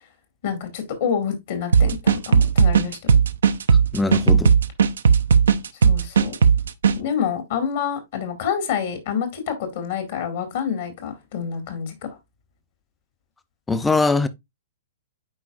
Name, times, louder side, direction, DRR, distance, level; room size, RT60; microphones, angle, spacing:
voice 1, 0.4-3.1 5.8-6.4 6.9-12.2, left 7 dB, 60° left, 2.1 m, -27 dB
sound 1, 1.7-7.0, right 6 dB, 70° right, 0.6 m, -16 dB
voice 2, 3.7-4.5 13.7-14.3, left 3 dB, 10° left, 0.7 m, -22 dB
9.5 x 4.6 x 2.5 m
figure-of-eight pair, 115°, 0 cm